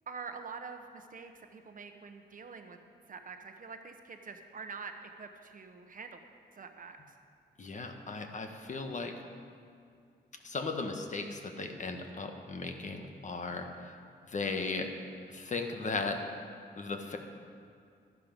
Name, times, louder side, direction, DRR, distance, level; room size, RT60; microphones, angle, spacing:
voice 1, 0.1-2.8 3.1-6.2 6.5-7.2, right 5 dB, 50° right, 6 dB, 1.0 m, -46 dB
voice 2, 7.6-9.2 10.4-13.9 14.3-14.9 15.3-16.2 16.8-17.2, left 3 dB, 40° left, 5 dB, 1.3 m, -36 dB
12.0 x 11.5 x 5.2 m, 2.4 s
cardioid pair, 90°, 18 cm